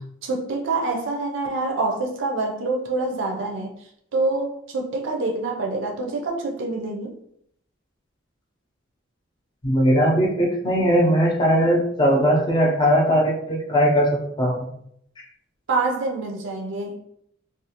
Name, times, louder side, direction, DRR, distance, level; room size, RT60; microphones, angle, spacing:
voice 1, 0.2-3.7 4.1-7.2 15.7-17.0, right 3 dB, 65° right, 0.5 m, -26 dB
voice 2, 9.6-14.1 14.4-14.7, equal, 20° left, 0.5 m, -19 dB
2.4 x 2.2 x 2.8 m
head